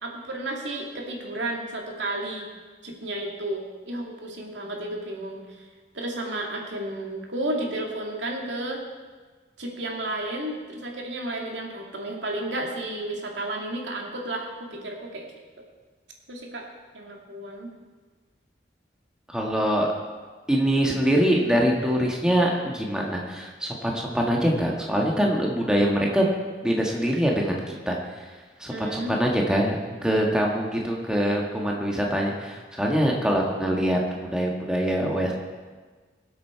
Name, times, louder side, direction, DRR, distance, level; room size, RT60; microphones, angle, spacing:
voice 1, 0.0-2.5 2.8-5.7 5.9-8.8 9.6-15.3 15.6-15.7 16.3-16.7 16.9-17.7 28.7-29.2, right 1 dB, 90° right, 0 dB, 2.5 m, -32 dB
voice 2, 19.3-19.9 20.5-26.3 26.6-27.6 27.9-28.0 28.6-35.3, equal, 5° right, -1 dB, 1.6 m, -24 dB
23.0 x 8.2 x 4.5 m, 1.4 s
head